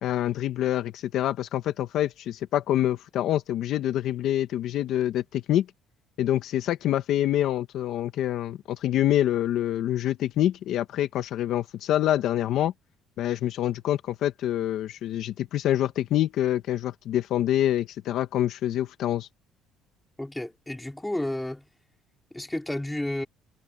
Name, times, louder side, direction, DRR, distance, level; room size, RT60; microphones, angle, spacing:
voice 1, 0.0-5.7 6.2-12.7 13.2-19.3, left 12 dB, 65° left, 1.6 m, -26 dB
voice 2, 20.2-21.7 22.3-23.3, left 1 dB, 5° left, 4.5 m, -31 dB
cardioid pair, 115°, 0 cm